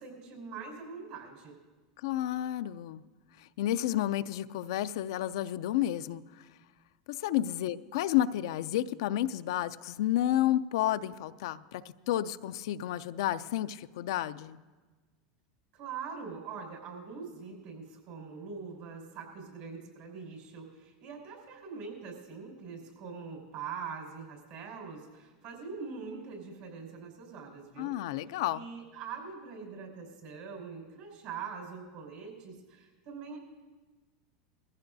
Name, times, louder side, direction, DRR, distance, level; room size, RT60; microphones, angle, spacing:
voice 1, 0.0-1.5 15.7-28.0 28.5-33.4, right 5 dB, 60° right, 0 dB, 5.1 m, -43 dB
voice 2, 2.0-3.0 3.4-6.2 7.1-14.6 27.8-28.7, left 13 dB, 75° left, 13 dB, 0.4 m, -31 dB
20.5 x 15.0 x 2.7 m, 1.3 s
supercardioid pair, 115°, 3 cm